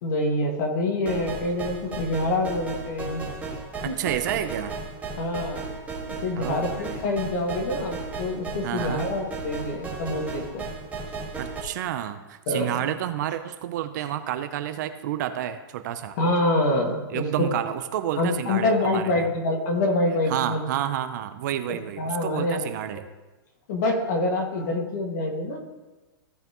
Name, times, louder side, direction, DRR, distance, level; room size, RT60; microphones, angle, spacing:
voice 1, 0.0-3.2 3.9-4.0 5.2-5.6 6.2-10.7 12.5-12.8 16.2-17.5 18.2-20.6 22.0-22.7 23.7-25.6, left 2 dB, 50° left, 1 dB, 2.0 m, -26 dB
sound 1, 1.1-11.6, right 4 dB, 10° right, 1.8 m, -35 dB
voice 2, 3.8-4.7 6.4-6.7 8.6-9.1 11.4-16.2 17.1-19.3 20.3-23.0, right 11 dB, 50° right, 10 dB, 0.6 m, -30 dB
16.0 x 5.7 x 3.0 m, 1.2 s
hypercardioid pair, 160°, 12 cm